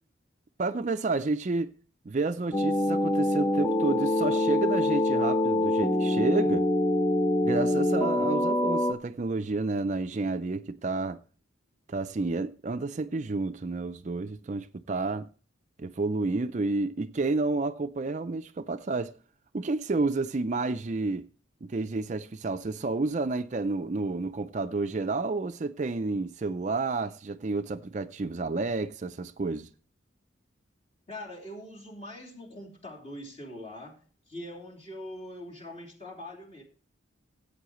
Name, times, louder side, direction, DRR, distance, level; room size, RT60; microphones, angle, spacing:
voice 1, 0.6-1.7 2.1-6.7 7.4-11.2 11.9-15.3 15.8-19.1 19.5-21.3 21.6-29.7, right 3 dB, 40° right, 0.4 m, -30 dB
sound 1, 2.5-8.9, left 1 dB, 10° left, 0.8 m, -25 dB
voice 2, 31.1-34.0 34.3-36.6, left 1 dB, 30° left, 3.0 m, -42 dB
16.0 x 8.5 x 3.1 m
head